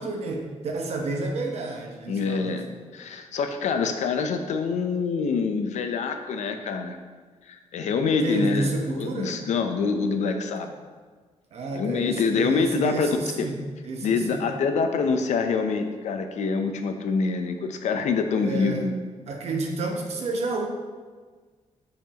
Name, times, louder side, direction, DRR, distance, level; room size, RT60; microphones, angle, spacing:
voice 1, 0.0-2.8 8.2-9.4 11.5-14.4 18.4-18.8 19.3-20.7, right 3 dB, 60° right, 1 dB, 1.0 m, -30 dB
voice 2, 2.1-2.7 2.9-7.0 7.5-8.7 9.0-10.7 11.7-13.1 14.0-18.9, left 5 dB, 75° left, 6 dB, 0.6 m, -25 dB
6.9 x 5.2 x 2.9 m, 1.5 s
wide cardioid pair, 155°, 12 cm